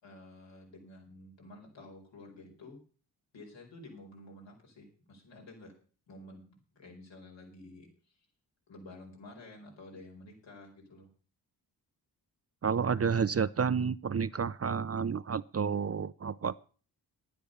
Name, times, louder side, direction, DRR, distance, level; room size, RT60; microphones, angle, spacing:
voice 1, 0.0-2.8 3.3-5.7 6.1-8.1 8.7-11.1, left 2 dB, 80° left, -1 dB, 5.0 m, -51 dB
voice 2, 12.6-16.5, right 6 dB, 35° right, 17 dB, 0.5 m, -30 dB
10.5 x 9.5 x 6.7 m, 0.40 s
cardioid pair, 50°, 44 cm